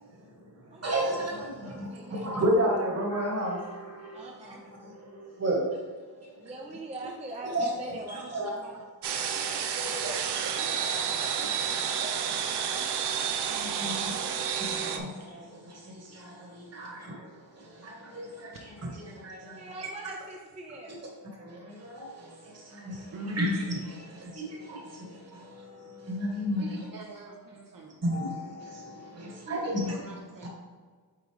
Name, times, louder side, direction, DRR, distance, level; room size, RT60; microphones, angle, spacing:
voice 1, 0.0-5.8 6.2-6.5 7.4-8.8 9.3-19.9 21.4-26.8 28.0-30.0 30.4-30.5, equal, 40° right, -1 dB, 1.5 m, -34 dB
voice 2, 0.7-2.2 4.1-4.7 6.4-8.7 19.6-21.0, right 2 dB, 15° right, 0 dB, 0.5 m, -42 dB
sound 1, 9.0-15.0, right 7 dB, 90° right, 0.6 m, -30 dB
voice 3, 23.1-23.5 26.6-28.0 29.5-30.5, right 4 dB, 55° right, -1 dB, 0.9 m, -44 dB
8.2 x 3.9 x 3.4 m, 1.5 s
wide cardioid pair, 165°, 39 cm